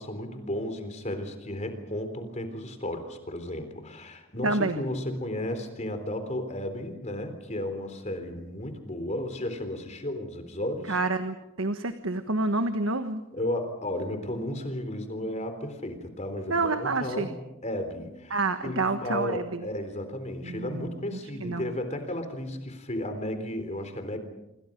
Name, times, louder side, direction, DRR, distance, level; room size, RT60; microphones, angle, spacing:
voice 1, 0.0-11.0 13.3-17.3 17.6-18.4 18.6-24.2, left 1 dB, 35° left, 8 dB, 3.8 m, -34 dB
voice 2, 4.4-4.8 10.9-13.2 16.5-17.3 18.3-19.6 20.4-20.9 21.4-21.7, right 3 dB, 85° right, 8 dB, 1.4 m, -28 dB
27.0 x 26.0 x 5.4 m, 0.90 s
head